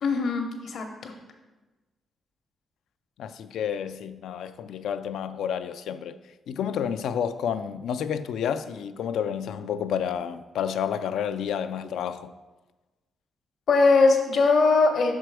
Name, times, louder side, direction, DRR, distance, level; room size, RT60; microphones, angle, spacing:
voice 1, 0.0-1.1 13.7-15.1, left 3 dB, 65° left, 0.9 m, -21 dB
voice 2, 3.2-6.2 6.5-12.3, left 8 dB, 85° left, 0.3 m, -30 dB
5.9 x 4.4 x 4.7 m
cardioid pair, 90°, 0 cm